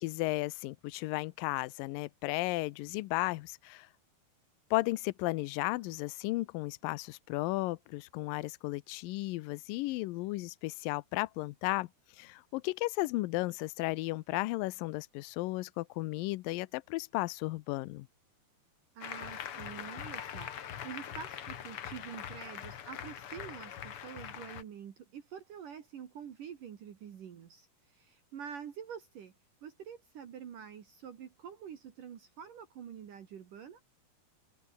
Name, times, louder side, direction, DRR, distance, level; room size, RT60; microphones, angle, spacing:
voice 1, 0.0-3.9 4.7-11.9 12.2-18.1, left 20 dB, 80° left, 2.0 m, -34 dB
voice 2, 18.9-29.3 29.6-33.9, right 8 dB, 55° right, 3.4 m, -47 dB
Applause, 19.0-24.6, left 9 dB, 65° left, 1.4 m, -42 dB
omnidirectional pair, 4.7 m